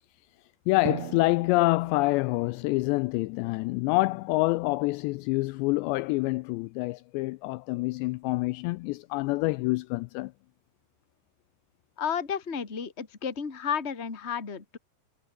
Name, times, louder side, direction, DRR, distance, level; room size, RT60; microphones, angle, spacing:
voice 1, 0.7-10.3, left 22 dB, 85° left, 2.6 m, -27 dB
Drum, 0.9-3.4, right 16 dB, 85° right, 3.5 m, -41 dB
voice 2, 12.0-14.8, left 7 dB, 20° left, 1.8 m, -32 dB
omnidirectional pair, 5.3 m